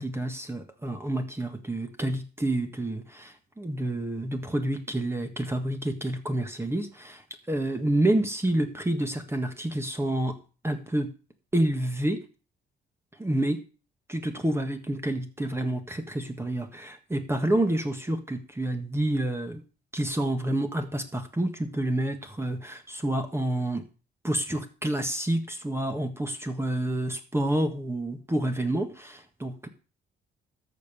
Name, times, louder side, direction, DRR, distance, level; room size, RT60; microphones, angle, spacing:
voice 1, 0.0-10.3 10.6-11.1 11.5-12.2 13.1-13.6 14.1-19.6 19.9-23.8 24.2-29.7, right 1 dB, 10° right, 6 dB, 1.6 m, -28 dB
13.5 x 5.4 x 6.8 m, 0.36 s
cardioid pair, 90°, 20 cm